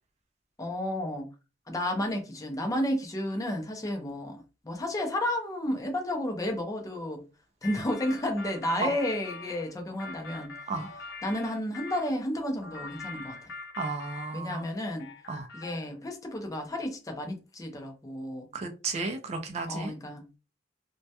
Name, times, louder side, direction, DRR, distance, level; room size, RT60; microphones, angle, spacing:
voice 1, 0.6-1.3 1.7-7.2 7.6-10.5 11.2-13.4 14.3-15.1 15.5-18.5 19.7-20.4, left 1 dB, 20° left, 0.5 m, -32 dB
sound 1, 7.6-12.1 12.6-14.7 15.0-16.0, left 4 dB, 70° left, 0.7 m, -44 dB
voice 2, 13.8-14.7 15.3-15.5 18.5-19.9, right 4 dB, 35° right, 0.3 m, -33 dB
2.2 x 2.1 x 2.7 m
head